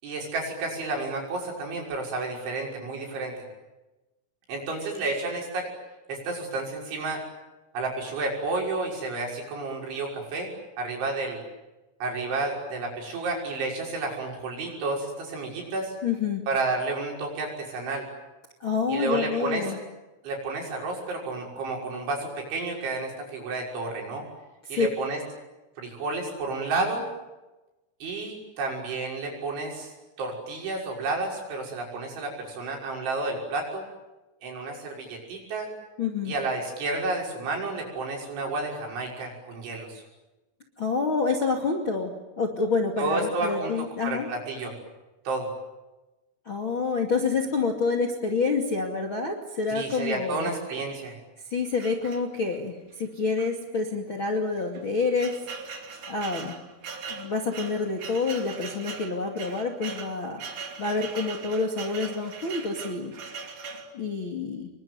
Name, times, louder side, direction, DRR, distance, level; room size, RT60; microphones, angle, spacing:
voice 1, 0.0-3.4 4.5-5.7 6.1-7.2 7.7-10.5 10.8-11.4 12.0-15.9 16.5-18.1 18.9-19.8 20.2-24.2 24.7-25.2 25.8-27.1 28.0-33.9 34.4-35.7 36.2-40.0 43.0-43.7 44.0-44.7 45.2-45.5 49.7-51.2, right 3 dB, 65° right, 0 dB, 8.3 m, -31 dB
voice 2, 16.0-16.4 18.6-19.8 24.6-24.9 36.0-36.3 40.8-44.3 46.5-50.5 51.4-55.4 55.6-55.7 56.1-56.6 57.1-60.4 60.8-63.1 63.9-64.7, left 4 dB, 35° left, 2 dB, 2.1 m, -28 dB
sound 1, 51.8-52.7 53.4-53.5 53.8-53.9 54.6-63.9, right 5 dB, 45° right, 3.6 m, -40 dB
28.0 x 23.0 x 9.4 m, 1.1 s
omnidirectional pair, 5.8 m